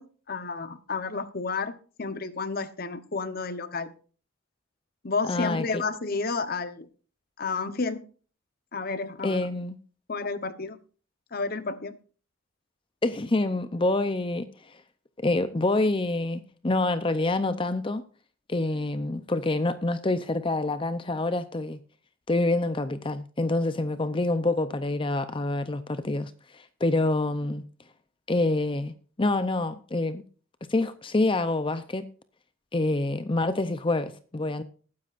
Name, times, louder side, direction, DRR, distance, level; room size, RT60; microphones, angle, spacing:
voice 1, 0.0-3.9 5.0-6.9 7.4-8.1 8.7-9.5 10.1-10.8 11.3-12.0, left 4 dB, 50° left, 1.0 m, -31 dB
voice 2, 5.3-5.8 9.2-9.8 13.0-14.8 15.2-18.0 18.5-21.8 22.3-27.6 28.3-28.9 29.2-30.2 30.7-32.1 32.7-34.6, left 2 dB, 25° left, 0.6 m, -27 dB
20.0 x 9.6 x 2.5 m
head